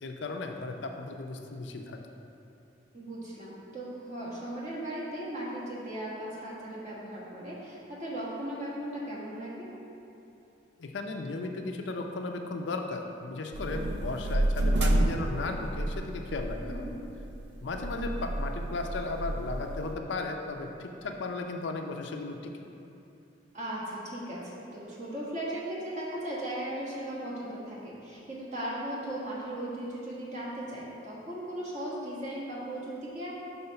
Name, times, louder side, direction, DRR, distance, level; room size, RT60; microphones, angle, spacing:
voice 1, 0.0-2.0 10.8-16.9 17.6-22.5, left 3 dB, 75° left, 4 dB, 0.5 m, -35 dB
voice 2, 2.9-9.7 16.6-16.9 23.5-33.3, right 1 dB, 35° right, -7 dB, 1.4 m, -37 dB
sound 1, 13.5-20.0, right 1 dB, 65° right, 0.4 m, -30 dB
5.5 x 4.2 x 5.7 m, 2.8 s
head